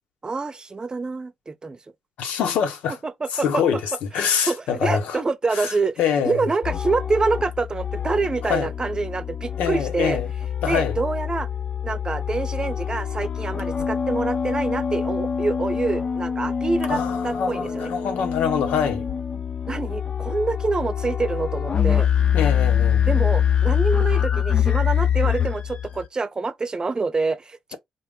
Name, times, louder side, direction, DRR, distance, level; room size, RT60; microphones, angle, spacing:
voice 1, 0.2-1.8 3.0-3.6 4.1-10.2 10.7-11.5 11.8-17.9 19.7-22.1 23.1-27.7, right 3 dB, 35° right, 0.7 m, -26 dB
voice 2, 2.2-3.0 3.4-3.8 4.1-5.2 5.6-5.7 6.0-6.5 8.5-8.7 9.6-10.3 10.6-10.9 16.9-19.0 22.3-23.0, left 7 dB, 70° left, 0.8 m, -24 dB
sound 1, 6.6-26.1, left 8 dB, 45° left, 0.6 m, -25 dB
3.9 x 2.2 x 3.7 m
hypercardioid pair, 45°, 2 cm